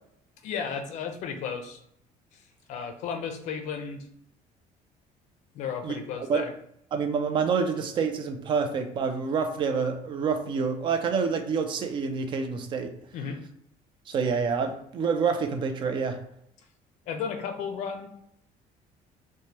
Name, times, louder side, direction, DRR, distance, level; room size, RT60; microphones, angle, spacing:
voice 1, 0.4-1.8 2.7-4.1 5.5-6.5 13.1-13.4 17.1-18.1, left 6 dB, 55° left, 6 dB, 0.4 m, -34 dB
voice 2, 6.9-12.9 14.1-16.2, right 5 dB, 35° right, 6 dB, 0.3 m, -27 dB
3.2 x 2.1 x 2.8 m, 0.73 s
cardioid pair, 170°, 14 cm